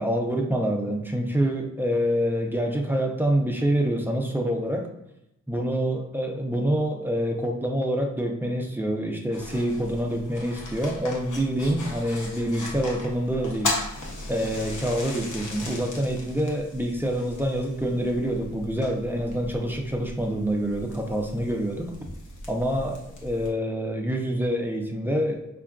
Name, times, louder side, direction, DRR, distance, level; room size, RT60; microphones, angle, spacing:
voice 1, 0.0-4.9 5.5-13.7 14.3-22.1 22.5-25.6, equal, 5° right, 1 dB, 0.4 m, -26 dB
sound 1, 9.3-23.5, left 2 dB, 75° left, 0.8 m, -37 dB
5.2 x 2.4 x 2.3 m, 0.84 s
wide cardioid pair, 135°, 30 cm